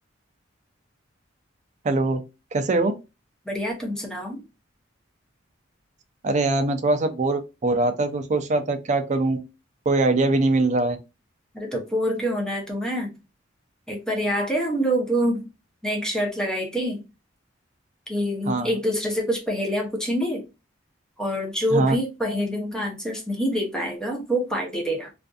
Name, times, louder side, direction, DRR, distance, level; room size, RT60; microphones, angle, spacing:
voice 1, 1.8-2.2 2.5-2.9 6.2-9.4 9.9-11.0 18.5-18.7 21.7-22.0, right 2 dB, 40° right, 0.4 m, -22 dB
voice 2, 3.5-4.4 11.5-13.1 13.9-15.5 15.8-17.0 18.1-20.5 21.2-25.1, equal, 5° left, 0.6 m, -26 dB
2.5 x 2.4 x 2.3 m
head